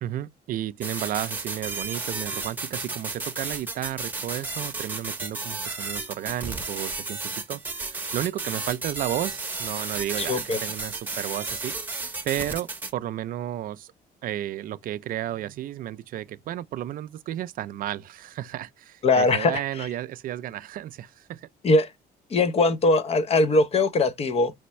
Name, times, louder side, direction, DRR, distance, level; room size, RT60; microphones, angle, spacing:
voice 1, 0.0-12.0 12.2-13.9 14.2-21.5, right 12 dB, 55° right, 0.4 m, -33 dB
sound 1, 0.8-12.9, right 3 dB, 10° right, 0.9 m, -33 dB
voice 2, 10.2-10.6 19.0-19.9 21.6-21.9 22.3-24.5, left 3 dB, 35° left, 0.7 m, -21 dB
4.4 x 3.3 x 3.0 m
cardioid pair, 110°, 17 cm